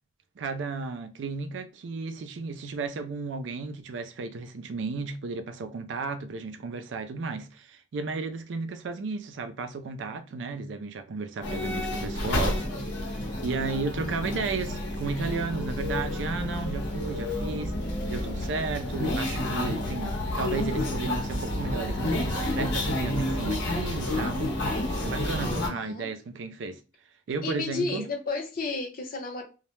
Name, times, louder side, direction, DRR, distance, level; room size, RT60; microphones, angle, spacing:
voice 1, 0.4-12.7 13.1-17.8 18.1-24.5 25.0-26.8 27.3-28.0, right 4 dB, 90° right, 0.4 m, -34 dB
sound 1, 11.4-25.7, left 1 dB, 85° left, 0.8 m, -30 dB
voice 2, 14.1-14.4 25.4-26.1 27.4-29.4, left 3 dB, 50° left, 0.7 m, -33 dB
2.2 x 2.0 x 3.0 m
head